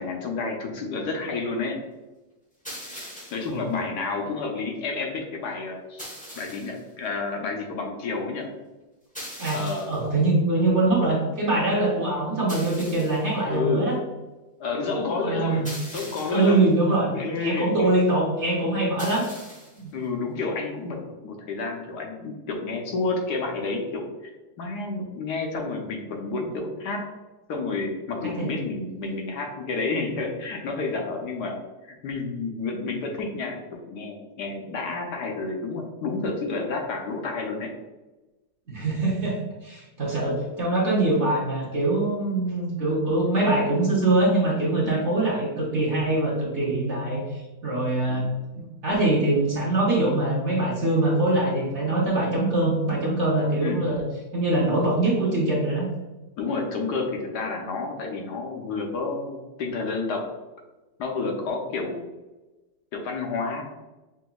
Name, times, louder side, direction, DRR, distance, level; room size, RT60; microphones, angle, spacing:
voice 1, 0.0-1.8 3.3-6.1 6.4-8.5 9.5-10.1 13.5-13.9 14.6-15.7 15.9-16.6 17.1-18.0 18.9-19.1 19.9-24.3 24.6-27.0 27.5-31.6 31.8-37.7 44.8-45.0 48.0-48.2 53.6-53.8 56.4-60.3 61.0-62.1 62.9-63.6, left 3 dB, 70° left, 1 dB, 1.1 m, -30 dB
sound 1, 2.6-3.6 6.0-6.8 9.1-10.1 12.5-13.3 15.6-16.6 19.0-19.8, equal, 10° left, 0.5 m, -40 dB
voice 2, 9.9-14.0 15.2-15.7 16.3-17.1 17.4-19.2 19.7-19.9 28.2-28.5 38.7-54.0 54.3-55.9, right 2 dB, 50° right, -4 dB, 1.0 m, -23 dB
5.8 x 2.7 x 2.3 m, 1.1 s
omnidirectional pair, 2.0 m